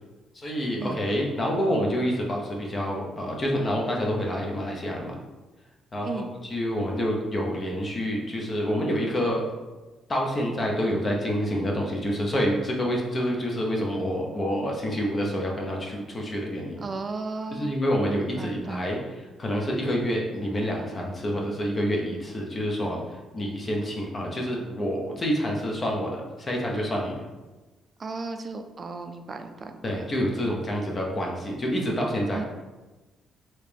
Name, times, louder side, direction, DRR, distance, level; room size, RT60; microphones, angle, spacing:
voice 1, 0.3-5.2 5.9-9.4 10.1-16.8 17.5-27.2 29.8-32.4, equal, 35° left, -1 dB, 0.8 m, -28 dB
voice 2, 16.8-17.7 18.2-18.9 28.0-30.0 30.4-30.5 32.3-32.4, right 3 dB, 35° right, 7 dB, 0.4 m, -35 dB
3.2 x 2.9 x 3.3 m, 1.2 s
cardioid pair, 90°, 0 cm